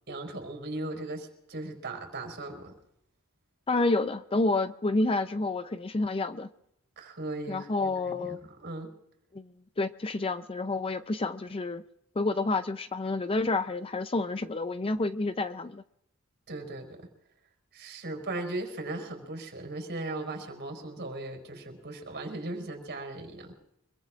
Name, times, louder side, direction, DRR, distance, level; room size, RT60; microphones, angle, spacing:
voice 1, 0.1-2.8 7.0-8.9 16.5-17.1 17.7-23.5, right 2 dB, 50° right, 4.5 m, -38 dB
voice 2, 3.7-6.5 7.5-8.4 9.3-9.5 9.8-11.8 12.2-15.8, left 2 dB, 25° left, 0.5 m, -29 dB
25.0 x 22.5 x 2.5 m
head